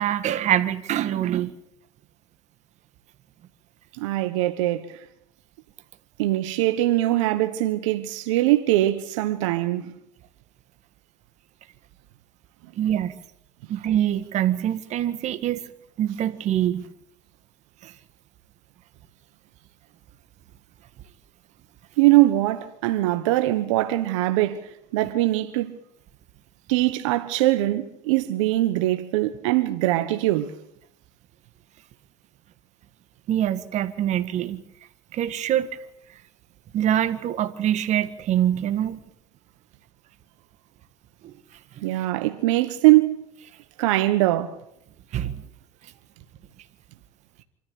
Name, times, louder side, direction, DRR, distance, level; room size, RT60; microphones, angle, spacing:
voice 1, 0.0-1.5 12.8-13.2 13.7-15.6 16.0-16.9 17.8-17.9 33.3-34.6 35.1-35.7 36.7-39.0 41.8-41.9 45.1-45.4, right 11 dB, 45° right, 1.8 m, -24 dB
voice 2, 4.0-4.9 6.2-9.9 22.0-24.6 24.9-25.8 26.7-30.5 41.8-43.2 43.8-44.5, right 16 dB, 80° right, 1.3 m, -22 dB
26.0 x 14.0 x 8.5 m
supercardioid pair, 100°, 16 cm